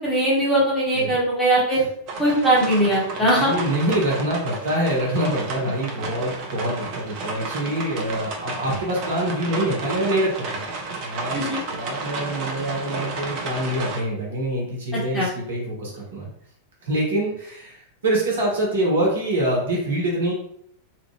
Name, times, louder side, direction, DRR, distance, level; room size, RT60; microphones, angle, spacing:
voice 1, 0.0-1.8 2.2-3.5 11.3-11.6 15.1-15.3, right 1 dB, 10° left, -6 dB, 1.4 m, -20 dB
sound 1, 2.1-14.0, right 3 dB, 40° right, 0.7 m, -32 dB
voice 2, 3.2-10.6 11.0-16.3 16.8-20.3, right 1 dB, 65° right, -3 dB, 1.2 m, -25 dB
2.9 x 2.5 x 3.2 m, 0.69 s
figure-of-eight pair, 90°, 0 cm